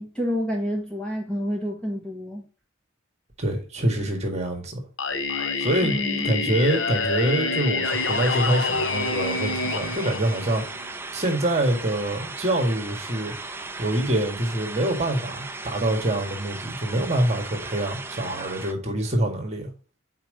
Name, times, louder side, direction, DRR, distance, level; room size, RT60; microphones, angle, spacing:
voice 1, 0.0-2.4 5.8-6.3, equal, 5° left, 1.5 m, -28 dB
voice 2, 3.4-4.8 5.6-10.6 11.1-13.3 13.8-19.7, right 1 dB, 35° right, 1.8 m, -25 dB
Singing, 5.0-10.9, left 3 dB, 70° left, 1.0 m, -27 dB
sound 1, 7.8-18.7, right 3 dB, 10° right, 0.5 m, -37 dB
5.8 x 4.5 x 5.0 m
head